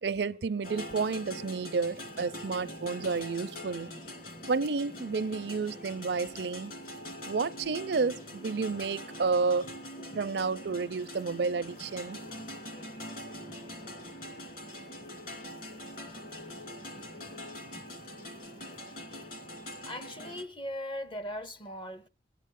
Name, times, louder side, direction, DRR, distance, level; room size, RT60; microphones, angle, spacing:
voice 1, 0.0-3.9 4.5-6.7 7.3-9.7 10.1-12.2, right 4 dB, 75° right, 0.5 m, -31 dB
sound 1, 0.6-20.4, left 1 dB, 50° left, 2.4 m, -43 dB
voice 2, 19.9-22.1, left 1 dB, 30° left, 0.6 m, -39 dB
22.0 x 8.3 x 3.7 m
head